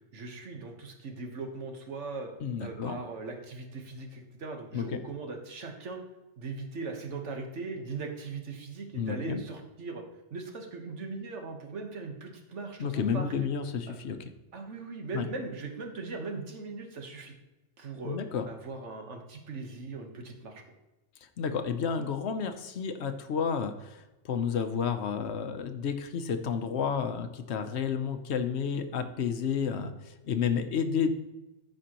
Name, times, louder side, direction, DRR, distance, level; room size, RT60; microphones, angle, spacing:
voice 1, 0.1-2.3 2.6-6.0 6.4-10.0 10.3-13.3 13.9-14.0 14.5-17.3 17.8-18.2 18.4-20.6, right 3 dB, 80° right, 3 dB, 1.5 m, -39 dB
voice 2, 2.4-3.0 4.7-5.0 8.9-9.4 12.8-14.2 15.1-15.3 18.0-18.5 21.4-31.1, left 6 dB, 70° left, 8 dB, 1.0 m, -31 dB
14.0 x 5.3 x 2.9 m, 1.0 s
omnidirectional pair, 1.2 m